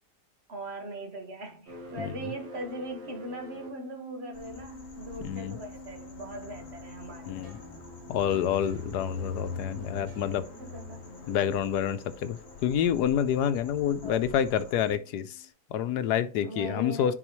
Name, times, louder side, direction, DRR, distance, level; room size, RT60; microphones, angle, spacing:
voice 1, 0.5-7.6 10.6-11.0 14.0-14.2 16.4-17.1, right 1 dB, 40° right, 1.7 m, -40 dB
sound 1, 1.7-15.5, left 1 dB, 80° right, 1.9 m, -48 dB
sound 2, 4.3-14.9, left 3 dB, 55° left, 1.6 m, -43 dB
voice 2, 5.2-5.6 7.3-7.6 8.1-10.4 11.3-15.4 15.7-17.1, left 9 dB, 85° left, 1.2 m, -28 dB
9.9 x 4.0 x 3.1 m
omnidirectional pair, 1.7 m